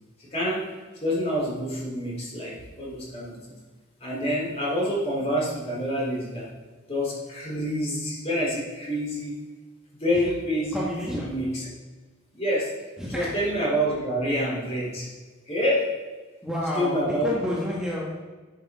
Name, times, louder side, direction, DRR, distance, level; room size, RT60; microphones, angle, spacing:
voice 1, 0.2-0.7 1.0-3.4 4.0-6.5 6.9-9.4 10.0-10.9 11.1-11.7 12.3-12.7 13.1-15.1 15.5-15.9 16.8-17.3, equal, 35° left, -4 dB, 3.7 m, -27 dB
voice 2, 10.7-11.3 13.0-13.3 16.4-18.1, left 1 dB, 5° right, -6 dB, 1.6 m, -29 dB
12.0 x 7.9 x 3.8 m, 1.3 s
head